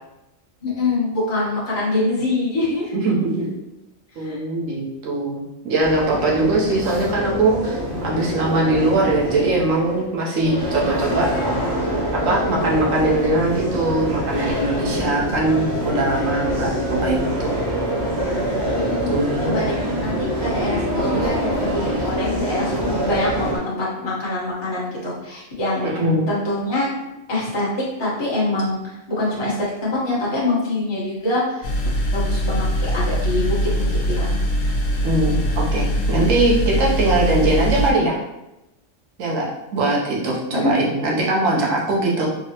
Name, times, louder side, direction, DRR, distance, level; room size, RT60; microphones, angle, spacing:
voice 1, 0.6-3.0 4.2-4.4 18.7-19.1 19.4-26.9 27.3-31.7 32.1-33.7 34.1-34.3 40.5-40.7, left 2 dB, 25° left, -7 dB, 0.9 m, -24 dB
voice 2, 2.9-3.5 4.2-7.8 8.0-11.3 12.1-17.5 19.1-19.5 25.8-26.2 35.0-38.2 39.2-42.3, right 2 dB, 90° right, -3 dB, 1.1 m, -21 dB
sound 1, 5.8-23.6, equal, 60° right, 1.3 m, -25 dB
sound 2, 31.6-37.9, equal, 55° left, 0.5 m, -22 dB
3.9 x 2.0 x 2.8 m, 0.94 s
omnidirectional pair, 1.3 m